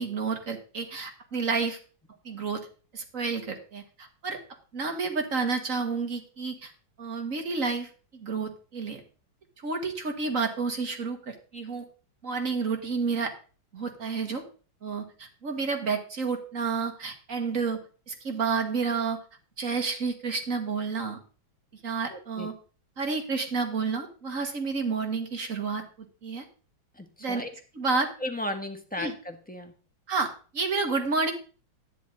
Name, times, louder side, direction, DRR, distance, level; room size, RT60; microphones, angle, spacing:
voice 1, 0.0-1.8 2.2-2.6 2.9-4.4 4.7-6.7 7.0-9.0 9.6-11.9 12.2-13.3 13.7-14.4 14.8-17.8 18.1-19.2 19.6-21.2 21.8-22.5 23.0-25.8 26.2-26.4 27.2-27.4 27.8-28.1 29.0-29.1 30.1-31.3, right 4 dB, 40° right, 5 dB, 2.1 m, -30 dB
voice 2, 22.1-22.5 26.9-27.5 28.2-29.7, left 1 dB, 5° left, 4 dB, 1.2 m, -35 dB
13.0 x 10.0 x 3.9 m, 0.38 s
omnidirectional pair, 2.2 m